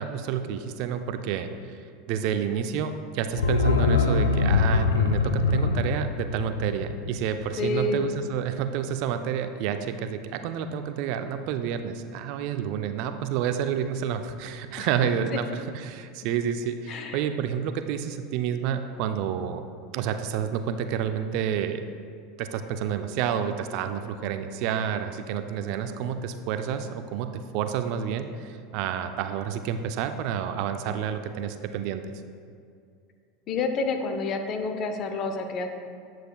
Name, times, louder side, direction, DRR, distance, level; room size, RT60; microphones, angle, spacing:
voice 1, 0.0-1.8 2.1-19.6 19.9-21.8 22.4-32.1, right 8 dB, 55° right, 8 dB, 0.4 m, -29 dB
sound 1, 3.3-8.1 8.4-8.5, left 4 dB, 85° left, 0.4 m, -24 dB
voice 2, 7.6-8.0 14.8-14.9 16.9-17.2 33.5-35.7, left 3 dB, 45° left, 6 dB, 0.7 m, -28 dB
8.9 x 7.6 x 2.3 m, 2.3 s
hypercardioid pair, 80°, 0 cm